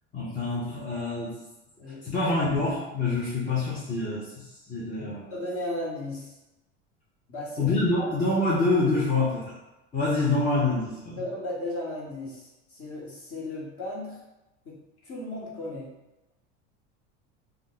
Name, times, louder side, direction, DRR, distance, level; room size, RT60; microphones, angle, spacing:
voice 1, 0.1-1.4 2.0-4.3 4.7-5.3 7.6-9.5 9.9-11.2, left 2 dB, 25° left, -7 dB, 0.7 m, -26 dB
voice 2, 1.8-2.2 4.9-6.4 7.3-8.1 11.2-14.2 14.6-15.9, left 1 dB, 40° left, -4 dB, 1.3 m, -36 dB
2.5 x 2.3 x 3.8 m, 0.98 s
supercardioid pair, 105°, 36 cm